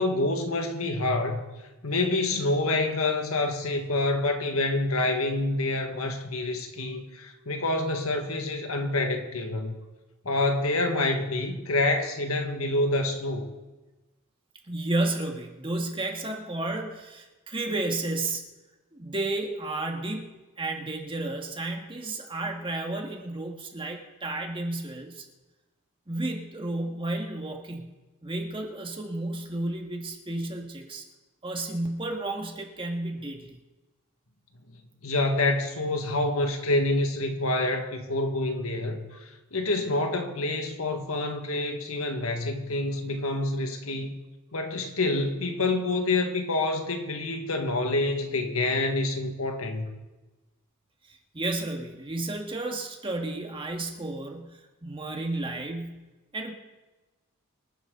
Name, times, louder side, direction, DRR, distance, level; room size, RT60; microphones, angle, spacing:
voice 1, 0.0-1.4 1.8-9.7 10.3-13.5 35.0-44.2 44.5-49.9, left 2 dB, 70° left, 4 dB, 1.8 m, -27 dB
voice 2, 14.7-18.5 18.9-25.2 26.1-27.9 28.2-31.0 31.4-33.6 51.3-56.5, right 2 dB, 25° right, 2 dB, 1.8 m, -32 dB
26.0 x 9.6 x 3.9 m, 1.1 s
head